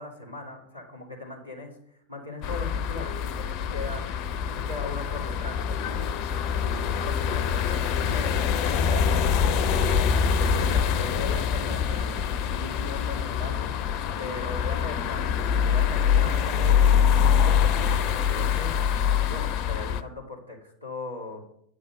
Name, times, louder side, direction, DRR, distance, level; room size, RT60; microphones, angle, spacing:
voice 1, 0.0-1.8 2.1-13.7 14.2-19.0 19.2-21.5, left 2 dB, 90° right, -3 dB, 3.2 m, -39 dB
sound 1, 2.4-20.0, left 7 dB, 40° left, 0.6 m, -24 dB
10.5 x 7.3 x 5.4 m, 0.70 s
figure-of-eight pair, 90°, 0 cm